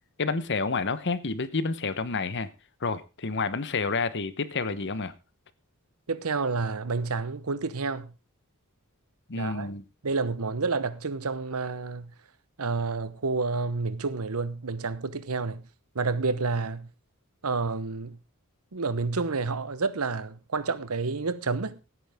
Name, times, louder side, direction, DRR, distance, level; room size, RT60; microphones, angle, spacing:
voice 1, 0.2-2.5 2.8-5.1 9.3-9.8, left 4 dB, 55° left, 1.0 m, -29 dB
voice 2, 6.1-8.1 9.4-9.7 10.0-12.1 12.6-15.6 15.9-16.9 17.4-18.2 18.7-21.8, right 4 dB, 75° right, 1.0 m, -29 dB
16.0 x 9.4 x 3.6 m
head